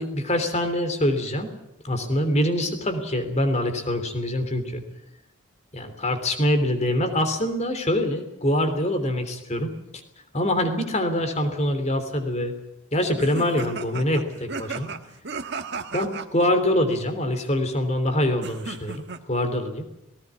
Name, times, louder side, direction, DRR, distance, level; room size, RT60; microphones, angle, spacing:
voice 1, 0.0-1.5 1.8-4.8 5.7-9.7 10.3-12.5 12.9-14.9 15.9-19.8, left 1 dB, 30° left, 8 dB, 3.2 m, -24 dB
sound 1, 13.2-16.3 18.4-19.2, right 4 dB, 50° right, 1.5 m, -34 dB
18.5 x 18.5 x 9.5 m, 0.89 s
head